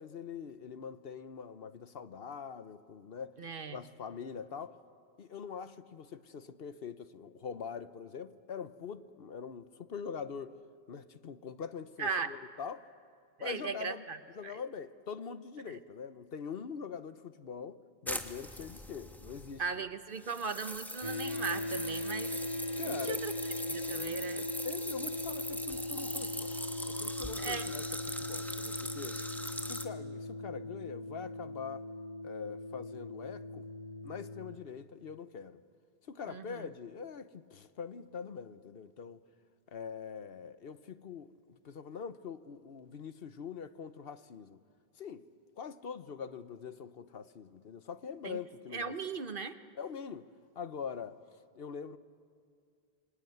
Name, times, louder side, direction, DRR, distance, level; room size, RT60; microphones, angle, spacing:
voice 1, 0.0-3.3 3.7-4.8 5.2-10.6 10.9-12.9 13.4-14.0 14.3-19.6 22.8-23.2 24.6-26.6 26.9-29.2 29.6-31.9 32.2-33.7 34.0-35.6 36.1-39.2 39.7-44.6 45.0-45.3 45.6-48.9 49.8-50.3 50.5-51.2 51.6-52.0, left 6 dB, 65° left, 1.0 m, -43 dB
voice 2, 3.4-3.8 12.0-12.3 13.4-14.5 19.6-22.3 22.8-23.3 23.7-24.5 27.4-27.7 36.3-36.7 48.2-48.4 48.7-49.5, right 5 dB, 55° right, 1.2 m, -38 dB
sound 1, 18.1-19.7 20.2-29.9, equal, ahead, 1.2 m, -41 dB
sound 2, 21.0-34.6, left 1 dB, 30° left, 1.1 m, -39 dB
27.0 x 24.0 x 9.3 m
omnidirectional pair, 1.1 m